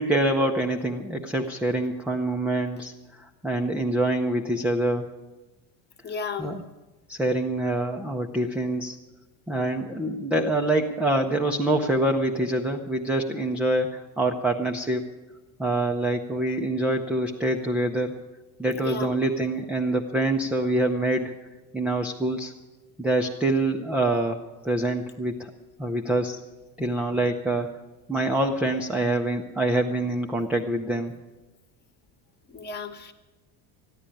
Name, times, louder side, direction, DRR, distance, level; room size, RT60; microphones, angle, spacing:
voice 1, 0.0-2.9 3.2-5.0 6.4-6.6 7.1-9.0 9.5-15.1 15.6-18.1 18.6-21.3 21.7-22.5 23.0-25.5 25.8-26.4 26.8-27.7 28.1-31.1, right 1 dB, 5° right, 2 dB, 0.5 m, -25 dB
voice 2, 6.0-6.6 18.8-19.2 26.8-26.9 32.5-33.1, left 5 dB, 25° left, 9 dB, 1.1 m, -34 dB
14.0 x 10.5 x 9.9 m, 1.2 s
cardioid pair, 160°, 39 cm